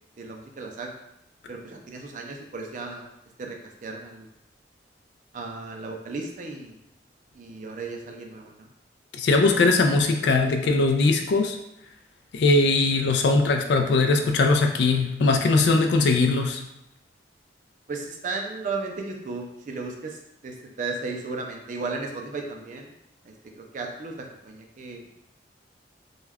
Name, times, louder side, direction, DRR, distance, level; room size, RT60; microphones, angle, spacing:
voice 1, 0.2-0.9 1.5-3.1 3.4-4.3 5.3-6.8 7.3-8.7 17.9-20.2 20.4-22.9 23.2-25.0, right 3 dB, 45° right, 2 dB, 0.4 m, -35 dB
voice 2, 9.1-11.6 12.3-16.6, left 3 dB, 70° left, 4 dB, 0.3 m, -20 dB
2.2 x 2.1 x 3.3 m, 0.84 s
head